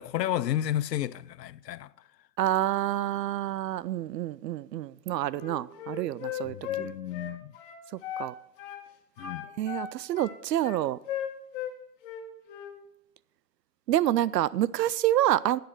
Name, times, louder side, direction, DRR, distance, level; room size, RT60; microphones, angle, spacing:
voice 1, 0.0-1.9 6.4-7.5 9.2-9.5, left 12 dB, 85° left, 0.7 m, -32 dB
voice 2, 2.4-6.9 8.2-8.3 9.6-11.0 13.9-15.6, right 13 dB, 85° right, 0.6 m, -28 dB
Wind instrument woodwind instrument, 5.3-8.3 8.6-8.8 9.2-11.7 12.0-12.7, left 9 dB, 35° left, 1.8 m, -37 dB
11.0 x 9.6 x 6.1 m
hypercardioid pair, 160°, 48 cm